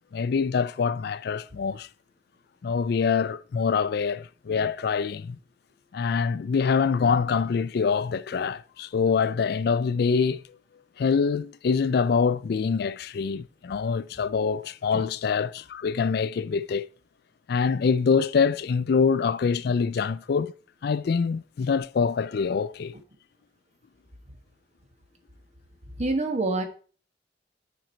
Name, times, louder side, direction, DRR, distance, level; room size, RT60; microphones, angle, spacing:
voice 1, 0.1-1.9 2.6-5.4 5.9-10.4 11.0-16.8 17.5-20.5 20.8-22.9, left 5 dB, 60° left, 0.4 m, -25 dB
voice 2, 26.0-26.6, right 2 dB, 40° right, 1.4 m, -26 dB
9.2 x 5.1 x 4.4 m
head